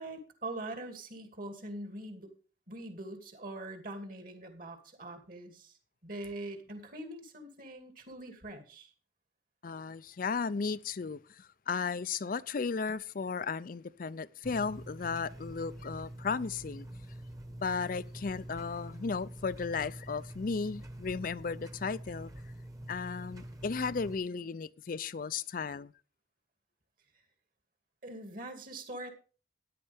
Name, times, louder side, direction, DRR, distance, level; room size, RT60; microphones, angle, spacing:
voice 1, 0.0-2.3 2.7-5.8 6.0-8.9 28.0-29.1, right 2 dB, 50° right, 2.5 m, -43 dB
voice 2, 9.6-16.9 17.6-22.3 22.9-25.9, left 5 dB, 50° left, 0.5 m, -35 dB
sound 1, 14.4-24.2, right 1 dB, 20° right, 1.2 m, -46 dB
13.5 x 10.5 x 3.5 m
head